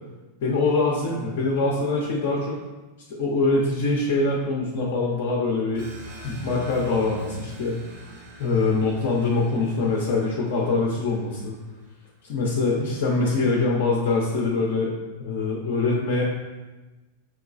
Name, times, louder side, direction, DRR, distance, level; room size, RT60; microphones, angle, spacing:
voice 1, 0.4-2.6 3.2-5.8 6.2-7.8 8.4-11.5 12.2-14.9 15.2-16.2, left 3 dB, 50° left, -2 dB, 0.6 m, -24 dB
sound 1, 5.7-12.0, right 1 dB, 50° right, 0.8 m, -44 dB
5.8 x 2.9 x 2.4 m, 1.2 s
figure-of-eight pair, 90°, 0 cm